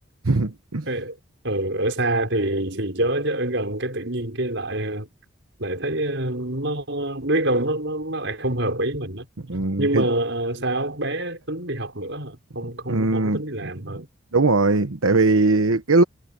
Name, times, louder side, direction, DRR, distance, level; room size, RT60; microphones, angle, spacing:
voice 1, 0.2-0.9 9.5-10.1 12.9-14.0 14.3-16.0, right 3 dB, 90° right, 1.2 m, -20 dB
voice 2, 0.9-1.2 1.4-5.1 5.6-9.3 9.8-14.1, right 1 dB, 60° right, 5.8 m, -26 dB
head